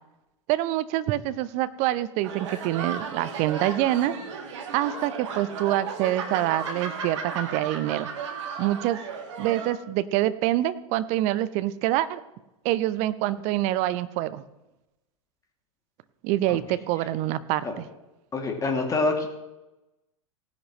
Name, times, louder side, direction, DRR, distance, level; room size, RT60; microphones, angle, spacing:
voice 1, 0.5-4.2 4.7-8.1 8.6-9.0 9.4-12.2 12.6-14.4 16.2-17.9, right 14 dB, 40° right, 14 dB, 0.8 m, -26 dB
sound 1, 2.2-9.7, right 5 dB, 60° right, 1.9 m, -35 dB
voice 2, 18.3-19.3, left 3 dB, 20° left, 2 dB, 2.5 m, -26 dB
18.0 x 10.5 x 3.1 m, 0.96 s
figure-of-eight pair, 90°, 17 cm